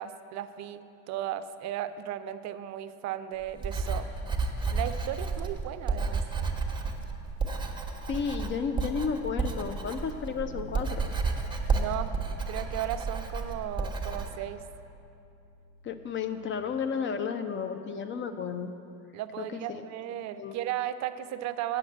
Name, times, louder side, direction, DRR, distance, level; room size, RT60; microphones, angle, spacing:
voice 1, 0.0-4.1 4.7-6.2 11.7-12.2 12.5-14.6 19.1-21.8, right 11 dB, 40° right, 11 dB, 0.5 m, -35 dB
Writing, 3.5-14.3, right 4 dB, 10° right, 1.1 m, -31 dB
voice 2, 8.1-11.0 15.8-18.7 19.4-19.8 20.4-20.5, left 6 dB, 30° left, 9 dB, 0.5 m, -32 dB
Bass guitar, 10.3-16.5, right 1 dB, 45° left, 1.8 m, -50 dB
8.4 x 6.5 x 7.6 m, 2.7 s
figure-of-eight pair, 65°, 44 cm